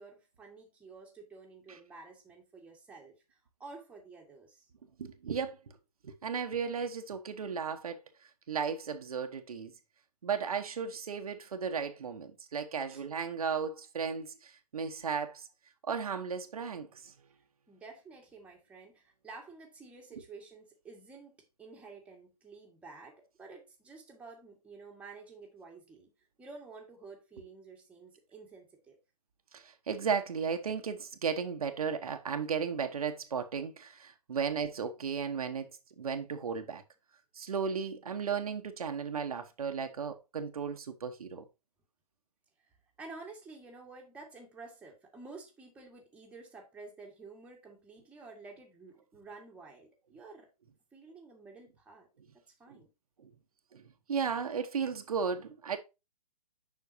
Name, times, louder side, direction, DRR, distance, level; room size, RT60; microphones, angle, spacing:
voice 1, 0.0-4.7 12.9-13.1 17.7-26.1 26.4-29.0 42.6-50.5 50.9-52.1 52.3-52.9, right 3 dB, 5° right, 1.7 m, -51 dB
voice 2, 5.0-5.6 6.0-9.7 10.2-15.5 15.9-17.1 29.5-35.7 36.0-36.8 37.3-41.5 53.2-53.3 53.7-53.8 54.1-55.8, right 6 dB, 65° right, 1.1 m, -35 dB
7.3 x 5.8 x 2.7 m
figure-of-eight pair, 135°, 20 cm